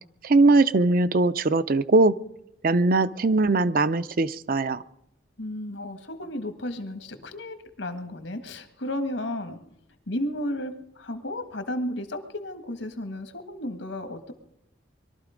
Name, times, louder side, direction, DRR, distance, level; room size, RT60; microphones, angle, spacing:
voice 1, 0.2-2.2 2.6-4.8, right 3 dB, 50° right, 13 dB, 0.5 m, -20 dB
voice 2, 5.4-9.6 10.1-14.3, left 1 dB, 75° left, 9 dB, 1.6 m, -33 dB
22.0 x 12.5 x 5.1 m, 0.79 s
head